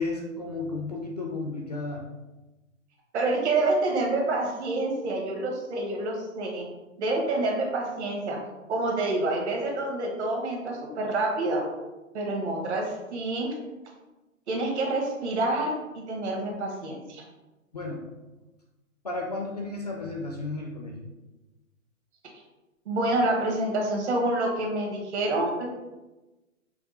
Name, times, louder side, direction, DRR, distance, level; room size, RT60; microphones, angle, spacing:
voice 1, 0.0-2.1 17.7-18.0 19.0-21.1, left 3 dB, 30° left, 0 dB, 0.4 m, -33 dB
voice 2, 3.1-6.7 7.0-8.4 8.7-11.7 12.1-13.6 14.5-17.2 22.8-25.7, right 2 dB, 55° right, 0 dB, 1.4 m, -27 dB
5.9 x 2.3 x 3.9 m, 1.1 s
hypercardioid pair, 150°, 41 cm